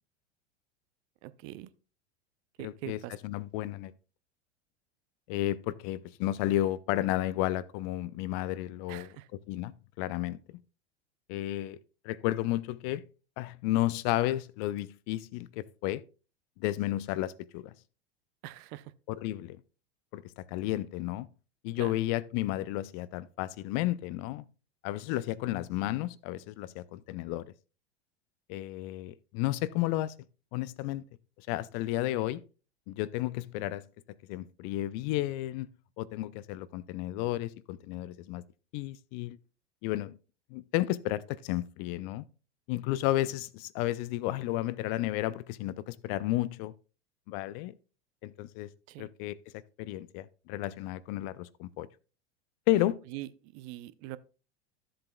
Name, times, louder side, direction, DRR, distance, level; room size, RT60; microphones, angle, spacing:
voice 1, 1.2-1.7 2.6-3.1 8.9-9.3 18.4-18.9 21.8-22.0 48.9-49.1 53.1-54.2, right 15 dB, 45° right, 0.6 m, -43 dB
voice 2, 2.6-3.9 5.3-10.4 11.3-11.8 12.0-13.0 13.4-16.0 16.6-17.7 19.1-19.6 20.1-21.3 21.6-24.4 24.8-27.5 28.5-30.1 30.5-31.0 31.5-32.4 32.9-33.8 34.3-35.7 36.0-38.4 38.7-39.4 39.8-40.2 40.5-42.2 42.7-46.7 47.3-47.7 48.2-48.7 49.0-49.4 49.8-51.9 52.7-53.0, left 15 dB, 45° left, 0.5 m, -32 dB
13.0 x 7.6 x 2.2 m
hypercardioid pair, 90°, 34 cm